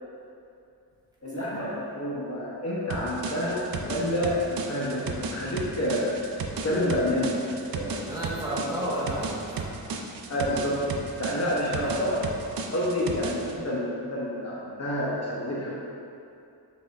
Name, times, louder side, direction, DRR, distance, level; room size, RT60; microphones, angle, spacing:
voice 1, 1.2-6.2 6.6-8.1 10.3-12.2 12.7-15.8, left 1 dB, 40° left, -7 dB, 0.8 m, -28 dB
sound 1, 2.9-13.6, right 4 dB, 65° right, 0.5 m, -35 dB
voice 2, 7.9-9.7 11.8-12.0, equal, 10° right, -8 dB, 1.1 m, -32 dB
6.3 x 3.6 x 2.4 m, 2.5 s
wide cardioid pair, 140°, 39 cm